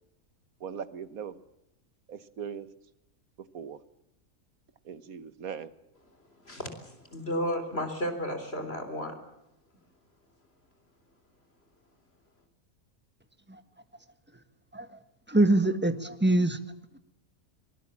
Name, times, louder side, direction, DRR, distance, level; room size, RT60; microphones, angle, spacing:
voice 1, 0.6-1.4 2.1-2.7 3.4-3.8 4.8-5.7, right 7 dB, 80° right, 14 dB, 1.7 m, -39 dB
voice 2, 6.4-9.2, equal, 45° left, 7 dB, 3.9 m, -33 dB
voice 3, 15.3-16.6, right 2 dB, 10° right, 10 dB, 1.4 m, -24 dB
24.0 x 19.5 x 7.5 m, 0.86 s
omnidirectional pair, 1.5 m